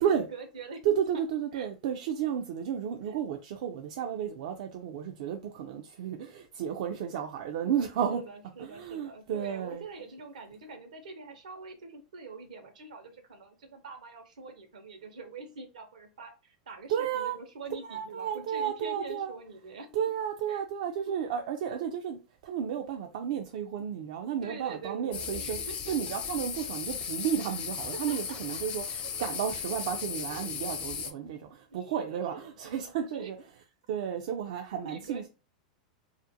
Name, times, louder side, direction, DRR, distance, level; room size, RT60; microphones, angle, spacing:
voice 1, 0.3-0.8 1.5-1.7 3.0-3.1 8.1-19.9 20.5-20.6 21.1-21.2 24.4-26.0 28.1-28.6 28.9-29.1 31.7-33.3 34.8-35.3, right 4 dB, 85° right, 0.7 m, -45 dB
voice 2, 0.8-8.2 8.6-9.8 16.9-17.4 17.9-19.3 19.9-22.2 22.4-33.4 33.9-35.3, right 8 dB, 65° right, 0.4 m, -32 dB
sound 1, 25.1-31.1, left 7 dB, 35° left, 0.5 m, -36 dB
2.4 x 2.1 x 2.7 m
hypercardioid pair, 110°, 4 cm